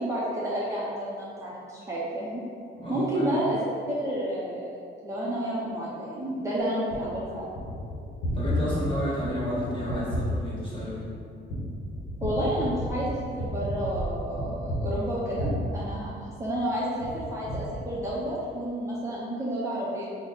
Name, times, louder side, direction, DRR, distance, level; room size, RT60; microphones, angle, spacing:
voice 1, 0.0-2.4 2.9-3.7 4.0-4.7 5.0-7.6 12.2-20.1, right 1 dB, 15° right, -8 dB, 0.6 m, -30 dB
voice 2, 2.7-3.3 8.3-11.1, left 1 dB, 25° left, -9 dB, 1.4 m, -31 dB
Gunshot gunfire, 6.9-16.6 17.0-18.4, equal, 90° left, 0.7 m, -33 dB
3.5 x 2.1 x 3.8 m, 2.4 s
cardioid pair, 90°, 20 cm